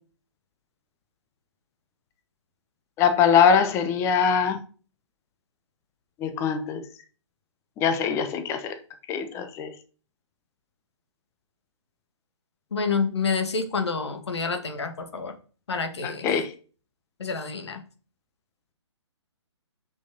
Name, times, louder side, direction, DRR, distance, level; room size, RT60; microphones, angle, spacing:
voice 1, 3.0-4.6 6.2-6.8 7.8-8.8 9.1-9.7 16.0-16.5, left 7 dB, 15° left, 1.0 m, -22 dB
voice 2, 12.7-15.3 15.7-16.3 17.2-17.8, left 5 dB, 60° left, 1.9 m, -28 dB
6.5 x 5.7 x 5.3 m
figure-of-eight pair, 135°, 15 cm